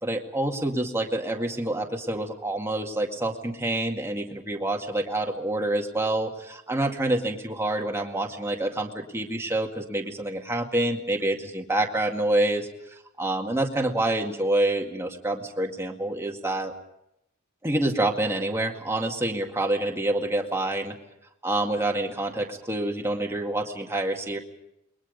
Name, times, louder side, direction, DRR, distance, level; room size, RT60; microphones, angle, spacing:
voice 1, 0.0-12.7 13.2-16.7 17.6-21.0 21.4-24.4, right 1 dB, 10° right, 2 dB, 2.1 m, -27 dB
28.5 x 22.0 x 5.3 m, 0.81 s
head